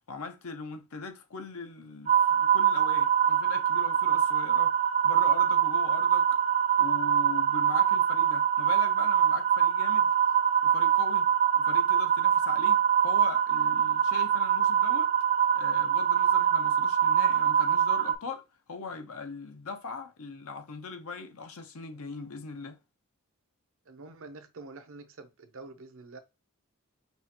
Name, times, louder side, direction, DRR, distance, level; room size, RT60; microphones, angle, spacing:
voice 1, 0.1-4.8 5.0-6.4 6.8-10.1 10.6-11.3 11.6-15.1 15.5-18.4 18.7-22.8, left 4 dB, 70° left, 0.7 m, -40 dB
sound 1, 2.1-18.1, right 8 dB, 30° right, 0.4 m, -24 dB
voice 2, 23.9-26.2, right 3 dB, 65° right, 0.7 m, -46 dB
5.4 x 2.4 x 2.9 m
head